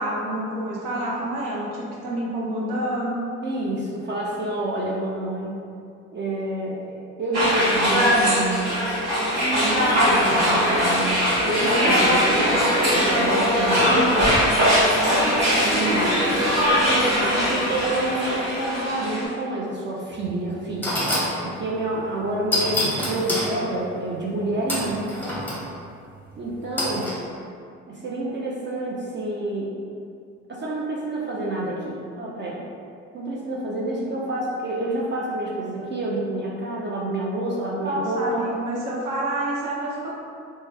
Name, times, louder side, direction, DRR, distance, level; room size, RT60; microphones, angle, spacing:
voice 1, 0.0-3.2 33.7-34.1 37.7-40.1, right 1 dB, 60° right, -5 dB, 0.9 m, -28 dB
voice 2, 3.4-5.6 6.1-8.8 9.5-14.4 15.0-16.1 16.5-21.0 21.3-25.2 26.4-27.1 27.9-29.7 30.5-32.6 33.1-38.5, right 2 dB, 30° right, -5 dB, 0.5 m, -28 dB
sound 1, 7.3-19.2, equal, 45° right, 1.4 m, -20 dB
sound 2, 20.1-20.2 20.8-21.4 22.5-23.5 24.7-25.6 26.8-27.2, left 1 dB, 5° left, 0.9 m, -26 dB
3.2 x 2.1 x 3.2 m, 2.4 s
hypercardioid pair, 45°, 36 cm